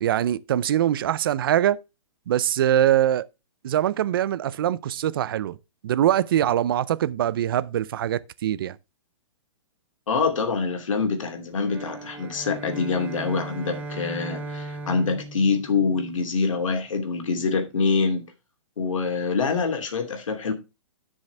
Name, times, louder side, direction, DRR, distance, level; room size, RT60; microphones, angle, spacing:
voice 1, 0.0-1.8 2.3-3.3 3.6-5.6 5.8-8.8, right 11 dB, 45° right, 0.5 m, -23 dB
voice 2, 10.1-18.2 18.8-20.5, left 4 dB, 85° left, 2.8 m, -25 dB
sound 1, 11.6-16.3, right 2 dB, 10° right, 0.7 m, -37 dB
11.5 x 6.3 x 3.3 m
hypercardioid pair, 165°, 16 cm